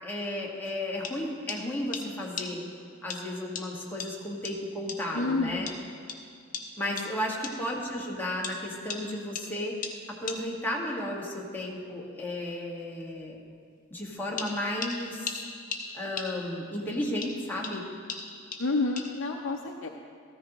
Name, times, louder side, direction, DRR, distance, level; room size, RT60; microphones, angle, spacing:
voice 1, 0.0-2.6 3.0-5.7 6.8-9.8 10.1-13.4 13.9-15.3 15.9-17.9, left 1 dB, 10° left, -3 dB, 1.6 m, -33 dB
sound 1, 0.7-0.8 1.0-1.2 1.5-1.6 1.9-2.1 2.4-2.5 3.1-3.2 3.6-3.7 4.0-4.1 4.5-4.6 4.9-5.0 5.7-5.8 6.1-6.2 6.5-6.7 7.0-7.1 7.4-7.6 8.4-8.6 8.9-9.0 9.4-9.5 9.8-10.0 10.3-10.4 14.4-16.7 17.2-19.3, left 5 dB, 45° left, 1.0 m, -38 dB
voice 2, 5.1-5.7 6.9-7.1 18.6-19.9, left 3 dB, 70° left, 1 dB, 0.6 m, -29 dB
14.0 x 14.0 x 3.0 m, 2.3 s
head